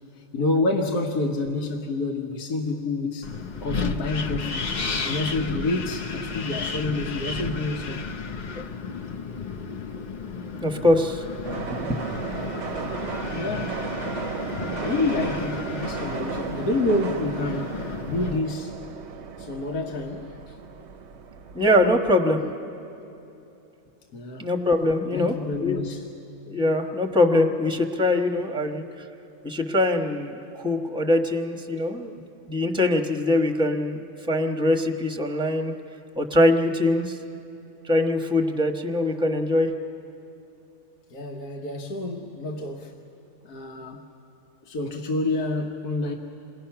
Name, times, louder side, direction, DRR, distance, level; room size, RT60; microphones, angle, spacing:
voice 1, 0.1-3.3 3.6-4.7 5.0-8.0 13.3-13.8 14.8-18.8 19.4-20.5 24.1-24.5 25.1-26.1 41.1-43.0 43.4-44.1 44.7-46.1, left 2 dB, 85° left, 1 dB, 1.6 m, -28 dB
Wind, 3.2-18.4, left 4 dB, 45° left, 0.6 m, -33 dB
voice 2, 10.6-11.2 11.7-12.0 21.5-22.4 24.4-25.8 26.5-29.0 29.4-32.1 32.5-35.7 36.2-37.2 37.8-39.7, left 1 dB, 5° right, 4 dB, 1.0 m, -23 dB
sound 1, 11.4-22.1, right 6 dB, 55° right, 0.9 m, -35 dB
28.0 x 20.5 x 5.8 m, 2.8 s
omnidirectional pair, 1.6 m